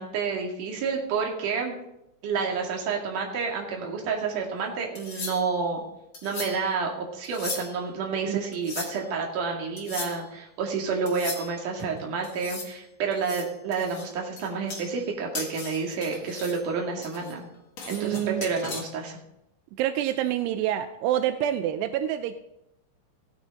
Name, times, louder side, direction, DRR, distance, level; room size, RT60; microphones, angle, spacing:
voice 1, 0.0-1.7 2.2-5.8 6.2-17.5 17.9-19.2, right 5 dB, 50° right, 0 dB, 3.1 m, -29 dB
sound 1, 4.9-5.6 6.1-6.7 7.2-7.9 8.5-9.1 9.8-10.2 11.0-11.8 12.2-12.8 13.1-15.1 15.3-16.6 17.0-18.8, left 4 dB, 65° left, 1.1 m, -38 dB
voice 2, 17.9-18.5 19.8-22.3, right 11 dB, 85° right, 9 dB, 2.4 m, -27 dB
16.5 x 9.8 x 4.1 m, 0.82 s
omnidirectional pair, 5.4 m